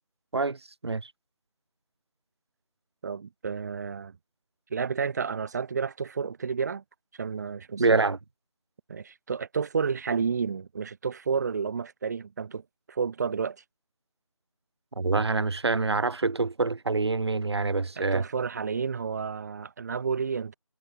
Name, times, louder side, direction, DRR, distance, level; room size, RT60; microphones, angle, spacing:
voice 1, 0.3-1.1 7.8-8.2 15.0-18.2, right 3 dB, 50° right, 1.6 m, -26 dB
voice 2, 3.0-4.1 4.7-6.8 7.1-8.0 8.9-12.6 12.9-13.6 18.0-20.5, right 6 dB, 30° right, 3.3 m, -31 dB
figure-of-eight pair, 160°, 17 cm